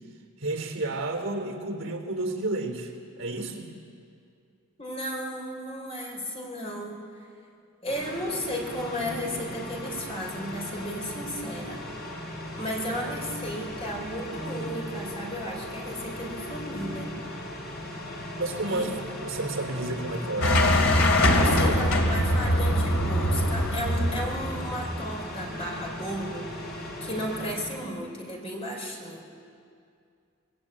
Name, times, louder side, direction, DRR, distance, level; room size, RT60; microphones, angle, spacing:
voice 1, 0.4-3.7 18.3-18.9 19.2-20.8 21.3-22.2, right 2 dB, 60° right, 3 dB, 3.3 m, -31 dB
voice 2, 4.8-7.3 7.8-11.8 12.6-17.2 18.7-18.9 21.3-29.2, equal, 30° left, 0 dB, 4.5 m, -34 dB
sound 1, 7.9-27.8, left 1 dB, 50° left, 5.7 m, -37 dB
sound 2, 20.4-25.1, left 1 dB, 65° left, 2.9 m, -23 dB
24.5 x 20.5 x 8.8 m, 2.4 s
head